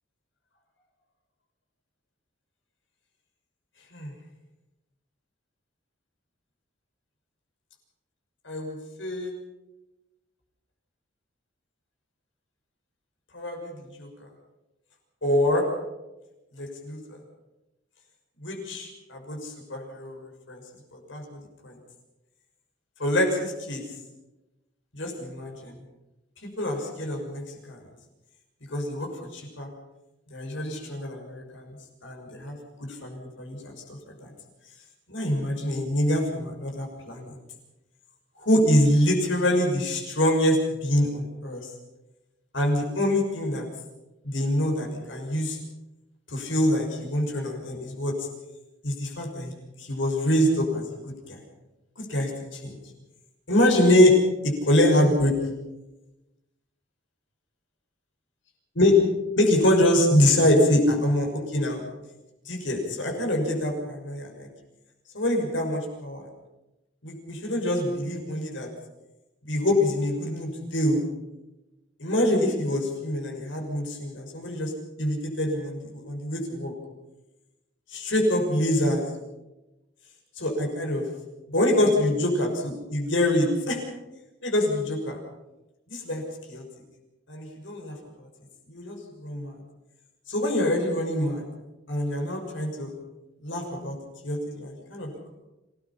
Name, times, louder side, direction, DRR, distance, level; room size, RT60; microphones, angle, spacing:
voice 1, 8.4-9.3 13.3-14.3 15.2-15.7 16.5-17.0 18.4-20.6 20.9-21.8 23.0-23.8 24.9-25.7 26.6-27.8 28.7-29.7 30.3-31.8 32.0-34.3 35.1-37.3 38.4-41.7 42.5-43.7 44.2-45.6 46.3-48.1 48.8-49.5 49.8-50.8 51.3-51.4 52.0-52.7 53.5-54.1 54.4-55.3 58.8-58.9 59.3-61.8 62.5-64.5 65.1-66.3 67.0-68.7 69.5-71.0 72.0-74.7 75.0-76.7 77.9-79.0 80.4-81.0 81.5-83.8 84.4-85.2 85.9-86.2 86.5-86.6 87.3-87.9 88.7-89.5 90.3-91.4 91.9-92.9 93.4-93.9 94.2-95.3, left 1 dB, 65° left, 2 dB, 6.4 m, -25 dB
27.0 x 19.0 x 5.7 m, 1.0 s
head